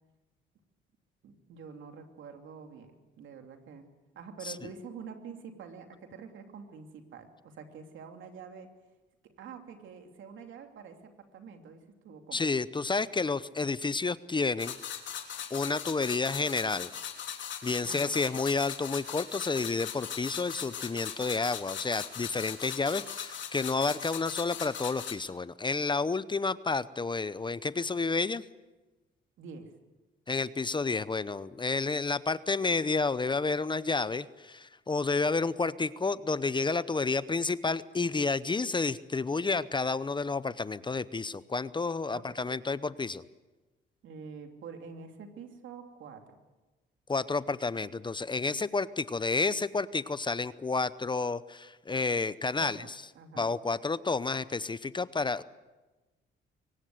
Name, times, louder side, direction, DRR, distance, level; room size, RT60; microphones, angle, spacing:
voice 1, 1.2-3.9 4.1-8.7 9.2-12.5 17.8-18.2 29.4-29.7 42.1-42.5 44.0-46.4 52.6-52.9 53.1-53.5, right 6 dB, 75° right, 5 dB, 3.0 m, -47 dB
voice 2, 12.3-14.8 15.5-16.9 17.6-28.4 30.3-43.2 47.1-52.8 53.4-55.4, left 4 dB, 25° left, 16 dB, 0.8 m, -30 dB
sound 1, 14.6-25.1, left 8 dB, 70° left, 3.3 m, -39 dB
23.5 x 19.0 x 7.9 m, 1.1 s
cardioid pair, 90°, 20 cm